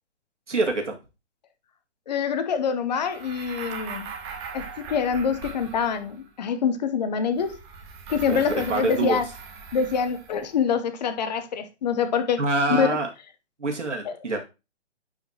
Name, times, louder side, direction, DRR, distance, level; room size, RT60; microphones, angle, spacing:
voice 1, 0.5-1.0 8.3-9.2 12.4-13.1 13.6-14.4, right 3 dB, 90° right, 2.2 m, -25 dB
voice 2, 2.1-4.1 4.5-7.6 8.1-9.3 9.7-12.4 12.8-13.0 14.0-14.1, left 6 dB, 40° left, 0.8 m, -25 dB
sound 1, 3.0-6.3 7.3-10.5, right 5 dB, 20° right, 1.1 m, -40 dB
9.8 x 4.9 x 2.9 m
hypercardioid pair, 145°, 35 cm